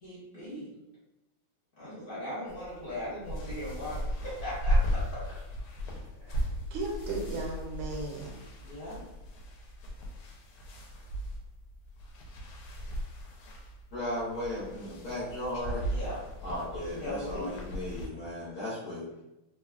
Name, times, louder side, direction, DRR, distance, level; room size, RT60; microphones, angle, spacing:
voice 1, 0.0-0.7 1.8-5.2 6.2-6.3 8.6-9.0 15.8-16.2 17.0-17.6, left 1 dB, 45° left, -9 dB, 1.5 m, -39 dB
sound 1, 2.5-18.1, equal, 80° left, 1.3 m, -36 dB
voice 2, 6.3-8.3, right 3 dB, 80° right, 0 dB, 1.5 m, -36 dB
voice 3, 13.9-15.8 16.4-19.2, left 1 dB, 60° left, -9 dB, 1.1 m, -36 dB
3.4 x 2.2 x 2.3 m, 0.95 s
omnidirectional pair, 2.4 m